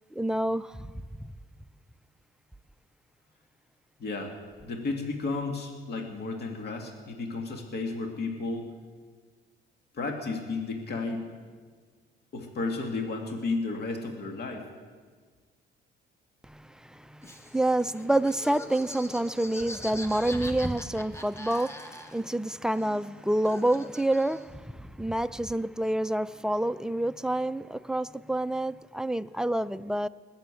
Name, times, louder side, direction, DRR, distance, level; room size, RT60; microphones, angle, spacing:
voice 1, 0.1-0.9 1.2-1.3 16.5-30.1, right 1 dB, 5° right, 0.3 m, -28 dB
voice 2, 4.0-4.3 4.6-8.7 9.9-11.3 12.3-14.6, left 3 dB, 55° left, 2.1 m, -33 dB
Laughter, 17.2-22.4 22.7-24.6, left 1 dB, 15° left, 1.1 m, -43 dB
19.5 x 7.2 x 8.3 m
cardioid pair, 110°, 20 cm